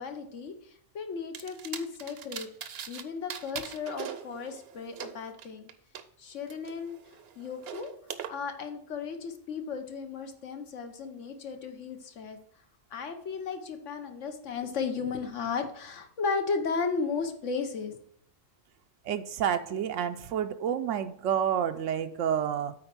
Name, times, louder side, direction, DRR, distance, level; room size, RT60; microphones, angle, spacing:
voice 1, 0.0-2.5 2.9-5.7 6.2-7.0 7.4-7.9 8.3-12.4 12.9-18.0, left 5 dB, 75° left, 6 dB, 1.3 m, -35 dB
sound 1, 1.3-3.0 3.3-6.0 6.5-8.3, right 8 dB, 60° right, 0.8 m, -41 dB
voice 2, 19.1-22.7, right 9 dB, 85° right, 8 dB, 0.9 m, -29 dB
8.7 x 4.3 x 5.9 m, 0.65 s
omnidirectional pair, 1.3 m